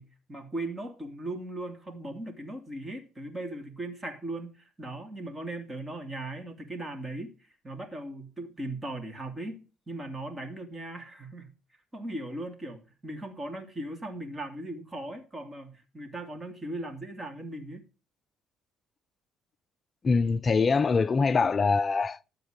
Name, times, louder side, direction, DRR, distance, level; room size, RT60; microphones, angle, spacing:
voice 1, 0.0-7.4 7.6-11.5 11.9-17.8, right 1 dB, 20° right, 2.9 m, -38 dB
voice 2, 20.0-22.3, left 4 dB, 30° left, 0.5 m, -24 dB
12.5 x 8.0 x 5.1 m
cardioid pair, 105°, 0 cm